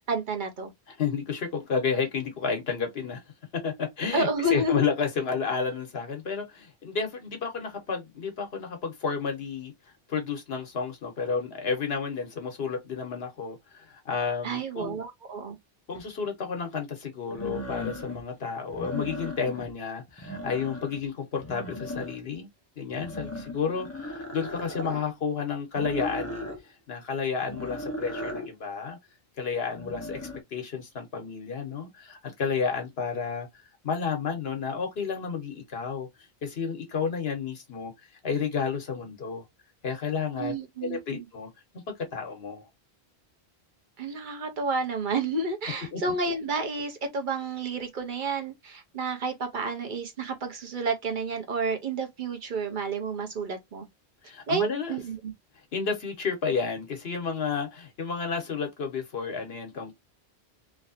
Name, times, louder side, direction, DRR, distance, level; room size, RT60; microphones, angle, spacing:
voice 1, 0.1-0.7 4.1-4.9 14.4-15.6 40.4-41.3 44.0-53.9 54.5-55.3, right 3 dB, 50° right, 1.0 m, -30 dB
voice 2, 1.0-3.2 3.5-9.7 10.1-15.0 15.9-22.5 22.8-26.5 26.9-29.0 29.4-33.5 33.8-36.1 36.4-37.9 38.2-39.4 39.8-40.6 40.8-41.5 41.9-42.6 45.9-46.1 54.2-55.0 55.7-59.9, left 5 dB, 75° left, 1.2 m, -31 dB
sound 1, 15.9-16.0 17.3-18.2 18.7-19.7 20.1-21.0 21.4-22.3 22.9-25.0 25.8-26.6 27.4-28.5 29.7-30.4, left 1 dB, 15° left, 0.8 m, -37 dB
3.1 x 2.7 x 2.6 m
omnidirectional pair, 1.1 m